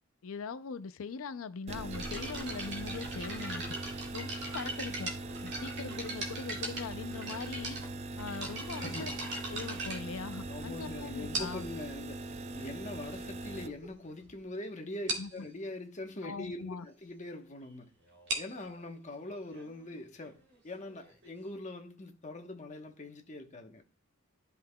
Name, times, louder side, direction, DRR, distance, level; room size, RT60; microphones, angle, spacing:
voice 1, 0.2-3.8 4.1-5.1 5.4-7.8 8.2-9.1 9.5-11.7 15.2-15.3 16.2-16.8, left 5 dB, 75° left, 0.5 m, -41 dB
sound 1, 1.7-13.7, right 2 dB, 30° right, 0.4 m, -41 dB
sound 2, 1.9-10.7 11.3-11.8 12.6-12.7 13.3-13.4 13.7-13.9 14.2-14.3 14.6-14.7 15.1-15.4 18.1-21.5, right 2 dB, 55° right, 2.0 m, -40 dB
voice 2, 8.8-9.1 10.5-12.2 12.5-17.9 18.4-20.4 20.6-23.8, left 2 dB, 35° left, 1.0 m, -43 dB
12.0 x 5.5 x 2.2 m
head